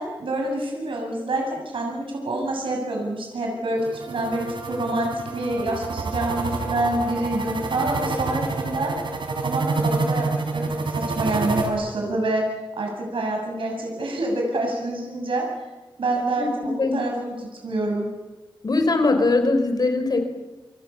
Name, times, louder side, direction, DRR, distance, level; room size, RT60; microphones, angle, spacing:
voice 1, 0.0-8.9 9.4-12.5 12.8-15.5 16.0-18.1, right 2 dB, 85° right, 0 dB, 7.3 m, -27 dB
sound 1, 3.8-11.7, right 3 dB, 65° right, 5.5 m, -28 dB
voice 2, 16.4-17.0 18.6-20.2, left 3 dB, 50° left, 7 dB, 4.4 m, -21 dB
29.5 x 26.5 x 7.1 m, 1.2 s
wide cardioid pair, 130°, 9 cm